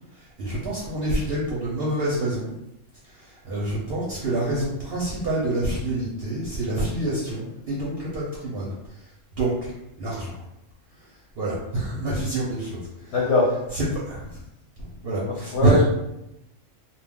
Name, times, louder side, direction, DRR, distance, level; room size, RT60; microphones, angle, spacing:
voice 1, 0.2-2.5 3.1-8.7 9.4-9.7 10.0-10.3 11.4-13.1 13.7-14.4 14.8-15.8, right 1 dB, 60° right, -5 dB, 0.7 m, -27 dB
voice 2, 13.1-13.5 15.3-15.8, left 2 dB, 65° left, -3 dB, 0.8 m, -21 dB
2.2 x 2.1 x 3.4 m, 0.88 s
omnidirectional pair, 1.3 m